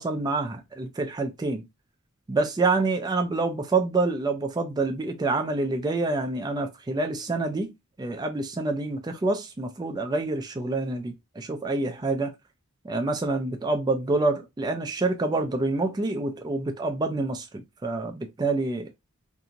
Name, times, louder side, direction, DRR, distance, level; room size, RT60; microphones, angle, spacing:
voice 1, 0.0-1.6 2.3-7.7 8.0-12.3 12.8-18.9, right 3 dB, 20° right, 0.3 m, -27 dB
2.6 x 2.5 x 2.8 m
head